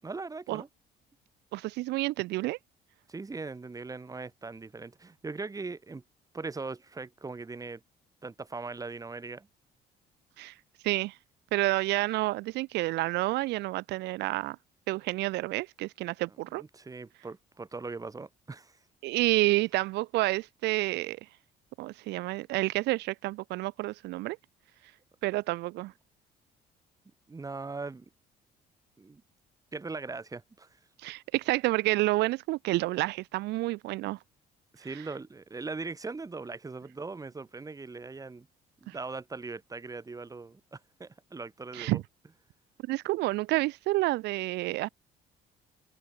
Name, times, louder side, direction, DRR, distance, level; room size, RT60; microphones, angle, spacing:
voice 1, 0.0-0.7 3.1-6.0 6.3-7.8 8.2-9.5 16.5-18.8 27.3-28.1 29.0-29.2 29.7-30.7 34.7-38.5 38.8-42.0, right 3 dB, 20° right, 5.3 m, -40 dB
voice 2, 1.5-2.6 10.4-10.5 10.8-11.1 11.5-14.6 14.9-16.6 19.0-21.2 21.8-24.4 25.2-25.9 31.0-34.2 38.9-39.0 41.7-42.0 42.9-44.9, right 19 dB, 85° right, 3.2 m, -29 dB
open air
cardioid pair, 110°, 17 cm